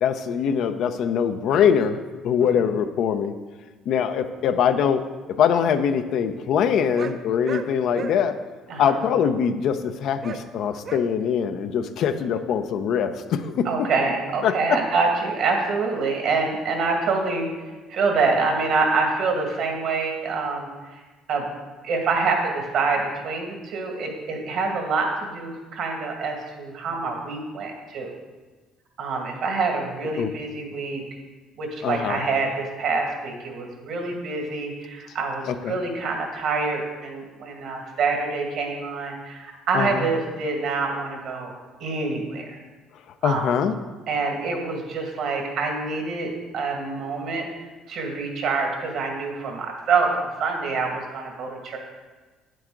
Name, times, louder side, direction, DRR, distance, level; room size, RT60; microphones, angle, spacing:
voice 1, 0.0-2.0 2.2-3.3 3.9-5.0 5.4-8.4 8.8-13.7 14.4-14.8 30.2-30.3 31.8-32.2 35.6-35.8 39.7-40.0 43.2-43.7, left 7 dB, 65° left, 8 dB, 0.6 m, -22 dB
sound 1, 6.9-7.2 7.4-7.7 7.9-8.1 10.2-10.4 10.8-11.0, right 6 dB, 45° right, 0.6 m, -33 dB
voice 2, 13.6-17.5 17.9-21.0 21.3-21.5 21.8-28.1 29.0-31.0 31.6-41.5 41.8-42.6 43.2-43.5 44.1-47.4 47.9-51.8, right 4 dB, 65° right, 2 dB, 2.0 m, -26 dB
8.9 x 7.7 x 3.8 m, 1.3 s
supercardioid pair, 90°, 0 cm